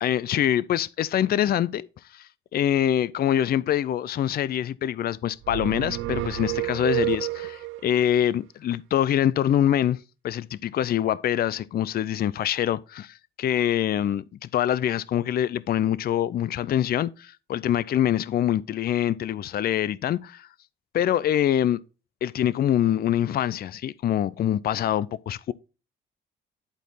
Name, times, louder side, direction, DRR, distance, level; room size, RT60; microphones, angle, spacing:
voice 1, 0.0-20.5 20.9-21.8 22.2-25.5, left 11 dB, 50° left, 0.4 m, -25 dB
sound 1, 5.4-7.9, right 17 dB, 85° right, 0.5 m, -29 dB
11.0 x 4.3 x 4.1 m
cardioid pair, 90°, 20 cm